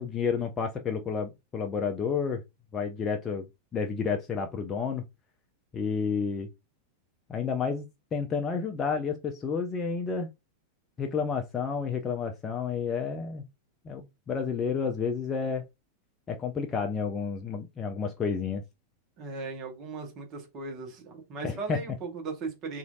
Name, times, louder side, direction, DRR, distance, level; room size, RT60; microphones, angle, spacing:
voice 1, 0.0-2.4 2.7-3.5 3.7-5.0 5.7-6.5 7.3-7.9 8.1-10.3 11.0-13.4 13.8-15.6 16.3-18.6 21.4-21.8, left 5 dB, 25° left, 0.4 m, -30 dB
voice 2, 19.2-22.8, right 4 dB, 35° right, 1.1 m, -37 dB
3.0 x 2.5 x 2.4 m
figure-of-eight pair, 90°, 0 cm